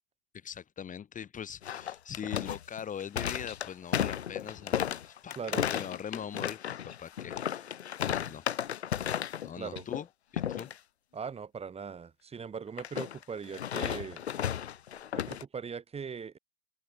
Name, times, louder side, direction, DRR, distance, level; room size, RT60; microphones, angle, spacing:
voice 1, 0.3-4.8 5.0-7.7 8.0-8.4 9.4-10.1 10.3-10.7, left 8 dB, 25° left, 2.5 m, -41 dB
sound 1, 1.6-9.5 9.8-10.0 10.4-10.7 12.8-15.4, left 10 dB, 75° left, 5.4 m, -34 dB
voice 2, 5.4-5.7 9.6-9.8 11.1-14.2 15.1-16.4, right 6 dB, 20° right, 2.9 m, -40 dB
open air
hypercardioid pair, 100°, 33 cm